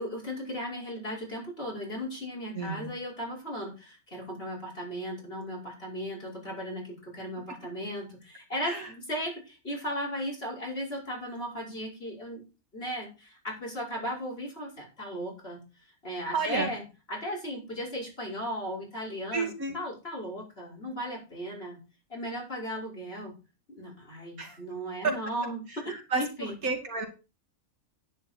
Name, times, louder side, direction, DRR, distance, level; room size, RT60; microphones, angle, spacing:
voice 1, 0.0-12.4 12.7-15.6 16.0-16.8 17.1-21.8 22.1-23.3 23.7-25.9 26.2-26.5, equal, 40° left, -2 dB, 5.8 m, -36 dB
voice 2, 2.5-2.9 8.7-8.9 16.3-16.7 19.3-19.8 24.4-24.6 25.0-25.1 25.9-27.1, right 4 dB, 75° right, 3 dB, 2.9 m, -31 dB
10.5 x 10.0 x 4.5 m, 0.31 s
omnidirectional pair, 1.5 m